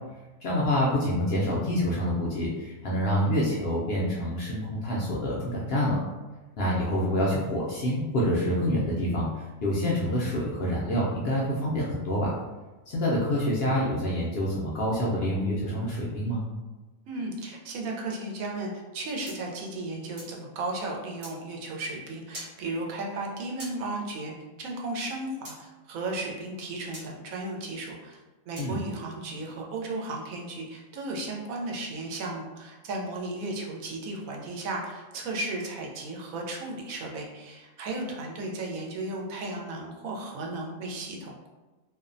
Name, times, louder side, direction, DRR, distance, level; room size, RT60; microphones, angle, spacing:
voice 1, 0.4-6.0 6.6-12.3 12.9-16.4 28.6-28.8, equal, 65° left, -5 dB, 0.6 m, -27 dB
voice 2, 17.1-41.5, right 2 dB, 85° right, 0 dB, 1.0 m, -35 dB
sound 1, 19.3-20.4 21.2-21.4 22.3-22.6 23.6-23.8 25.4-25.6 26.9-27.1 28.6-28.8, equal, 40° right, 0.9 m, -42 dB
2.6 x 2.0 x 2.5 m, 1.2 s
omnidirectional pair, 1.4 m